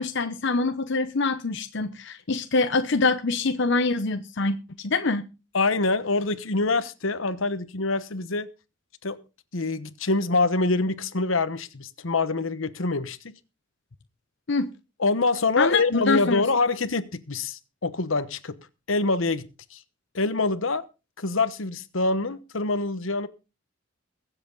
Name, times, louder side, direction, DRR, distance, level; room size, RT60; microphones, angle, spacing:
voice 1, 0.0-4.6 4.8-5.2 14.5-14.7 15.6-16.4, left 3 dB, 65° left, 0.9 m, -24 dB
voice 2, 5.5-8.5 9.0-9.2 9.5-13.2 15.0-19.8 20.1-20.8 21.2-23.3, left 3 dB, 80° left, 1.1 m, -25 dB
22.5 x 7.9 x 3.9 m
head